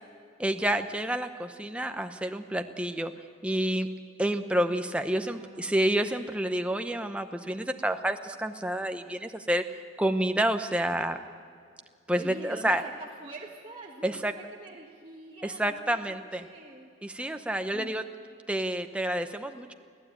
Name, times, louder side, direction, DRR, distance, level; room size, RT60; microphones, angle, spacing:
voice 1, 0.4-3.1 3.4-3.9 4.2-9.6 10.0-11.2 12.1-12.8 14.0-14.3 15.4-16.5 17.0-18.0 18.5-19.7, right 1 dB, 5° right, 6 dB, 0.7 m, -29 dB
voice 2, 5.1-5.9 12.2-16.9 17.7-18.0, right 2 dB, 25° right, -1 dB, 1.4 m, -45 dB
24.0 x 15.5 x 8.8 m, 2.2 s
head